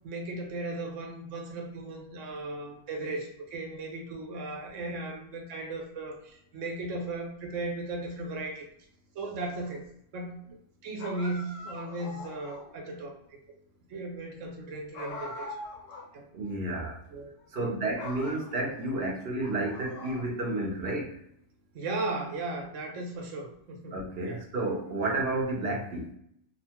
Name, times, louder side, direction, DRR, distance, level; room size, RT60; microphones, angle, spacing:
voice 1, 0.0-8.7 9.1-10.6 10.8-13.4 13.9-15.5 16.1-16.3 17.1-17.3 17.6-17.7 21.7-23.9 24.2-24.4, right 2 dB, 85° right, 1 dB, 1.0 m, -36 dB
sound 1, 11.0-12.8 14.9-16.1 16.4-16.5 17.4-17.7 18.0-19.0 19.4-20.6, left 2 dB, 85° left, 1.1 m, -43 dB
voice 2, 16.3-17.0 17.5-21.2 23.9-26.1, right 2 dB, 60° right, 0 dB, 0.9 m, -31 dB
2.8 x 2.1 x 2.8 m, 0.71 s
omnidirectional pair, 1.3 m